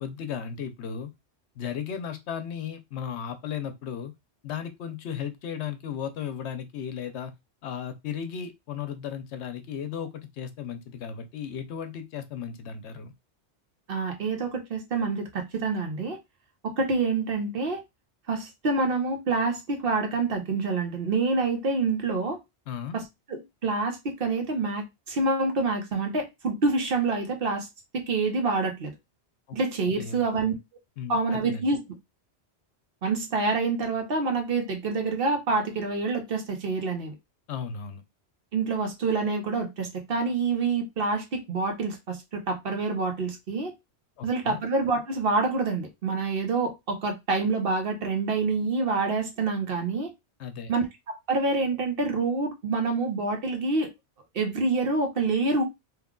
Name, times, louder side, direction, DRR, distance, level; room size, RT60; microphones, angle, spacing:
voice 1, 0.0-1.1 1.6-4.1 4.4-7.3 7.6-13.1 22.7-23.0 29.5-29.6 30.0-30.2 31.0-31.7 37.5-38.0 44.2-44.6 50.4-50.7, left 8 dB, 80° left, 0.9 m, -35 dB
voice 2, 13.9-16.2 16.6-17.8 18.3-22.4 22.9-23.0 23.3-27.7 27.9-28.9 29.5-30.5 31.1-31.8 33.0-37.1 38.5-43.7 44.2-50.1 50.7-53.9 54.3-55.6, right 3 dB, 55° right, 1.0 m, -27 dB
3.1 x 2.2 x 3.6 m
omnidirectional pair, 1.2 m